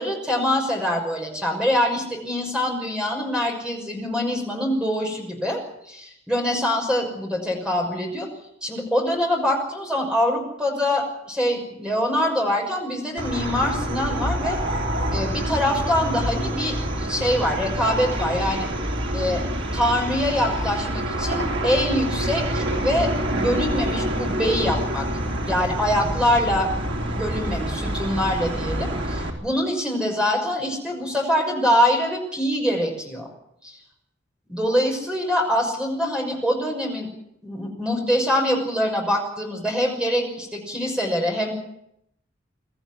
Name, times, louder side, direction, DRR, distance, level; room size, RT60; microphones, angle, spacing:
voice 1, 0.0-5.6 5.9-8.3 8.6-14.6 15.1-18.7 19.1-19.4 19.7-25.1 25.5-26.7 27.2-33.3 33.6-33.7 34.5-37.1 37.4-41.5, left 1 dB, 5° right, 1 dB, 6.0 m, -24 dB
sound 1, 13.2-29.3, right 1 dB, 80° right, 3.8 m, -27 dB
23.0 x 14.0 x 9.8 m, 0.77 s
head